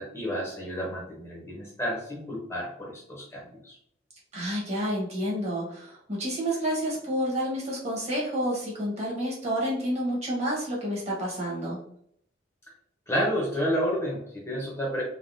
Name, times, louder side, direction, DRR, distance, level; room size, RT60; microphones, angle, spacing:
voice 1, 0.0-3.8 13.1-15.0, equal, 15° left, -4 dB, 0.6 m, -30 dB
voice 2, 4.3-11.8, equal, 35° right, -4 dB, 1.0 m, -29 dB
3.4 x 2.1 x 2.5 m, 0.68 s
head